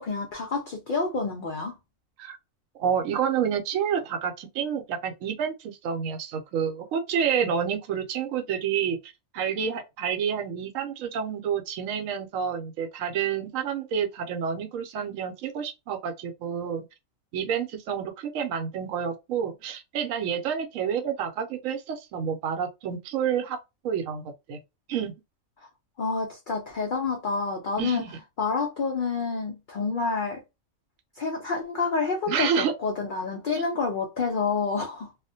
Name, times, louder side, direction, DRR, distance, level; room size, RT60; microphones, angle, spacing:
voice 1, 0.0-1.8 26.0-28.1 28.4-30.4 31.2-35.1, left 4 dB, 65° left, 0.4 m, -28 dB
voice 2, 2.8-9.0 9.3-16.8 17.3-23.6 23.8-24.6 24.9-25.1 27.8-28.2 32.3-32.7, right 7 dB, 75° right, 0.9 m, -29 dB
2.4 x 2.1 x 2.6 m
omnidirectional pair, 1.4 m